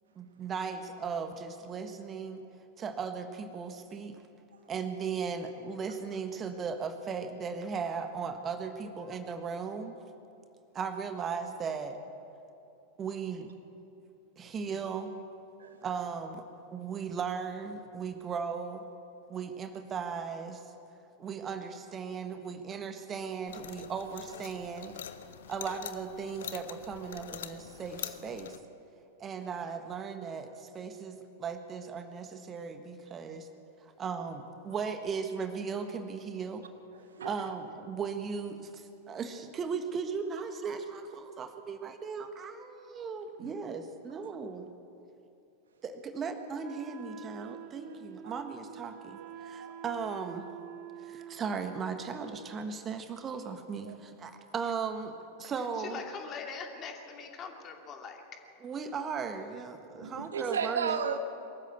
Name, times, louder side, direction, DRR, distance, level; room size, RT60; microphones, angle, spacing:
voice 1, 0.1-2.4 2.8-4.2 4.7-9.9 10.7-12.0 13.0-13.5 14.4-15.2 15.8-18.8 19.3-20.6 21.2-25.0 25.5-28.6 29.2-33.5 33.8-36.6 37.2-44.7 45.8-50.4 51.0-56.0 58.6-61.0, right 5 dB, 25° right, 7 dB, 1.5 m, -37 dB
sound 1, 23.5-28.6, left 10 dB, 60° left, 0.9 m, -44 dB
voice 2, 36.9-37.4 43.4-43.5 47.9-48.0 48.2-48.4 49.2-49.7 53.8-54.0 60.0-61.2, right 7 dB, 65° right, 9 dB, 1.3 m, -35 dB
Wind instrument woodwind instrument, 46.6-52.5, right 8 dB, 45° right, 0.9 m, -47 dB
voice 3, 55.8-58.2, left 5 dB, 30° left, 3 dB, 2.6 m, -42 dB
23.0 x 14.0 x 8.3 m, 2.7 s
figure-of-eight pair, 90°, 0 cm